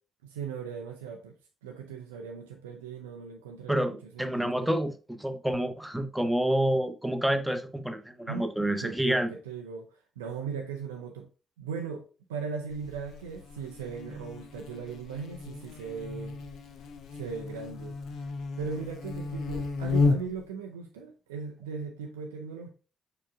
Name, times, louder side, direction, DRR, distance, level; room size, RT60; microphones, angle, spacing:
voice 1, 0.2-1.3 1.6-4.6 8.3-8.5 8.8-11.3 11.6-12.0 12.3-16.4 17.1-18.3 18.6-22.7, right 5 dB, 80° right, 0.4 m, -38 dB
voice 2, 3.7-9.3, right 1 dB, 5° right, 0.8 m, -28 dB
Buzz, 12.7-20.5, left 3 dB, 60° left, 0.5 m, -33 dB
4.7 x 4.6 x 2.3 m
figure-of-eight pair, 40°, 0 cm